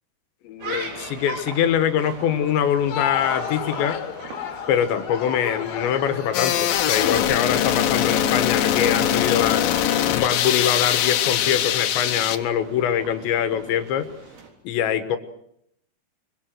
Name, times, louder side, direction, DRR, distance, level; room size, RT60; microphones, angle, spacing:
voice 1, 0.4-4.0 4.7-9.6 10.1-14.1 14.7-15.2, left 9 dB, 90° left, 10 dB, 3.7 m, -23 dB
sound 1, 0.6-14.5, right 4 dB, 65° right, 5.6 m, -41 dB
Crowd, 2.6-8.5, left 8 dB, 50° left, 2.6 m, -33 dB
sound 2, 6.3-12.4, left 10 dB, 70° left, 2.5 m, -22 dB
24.5 x 24.0 x 7.7 m, 0.72 s
omnidirectional pair, 5.0 m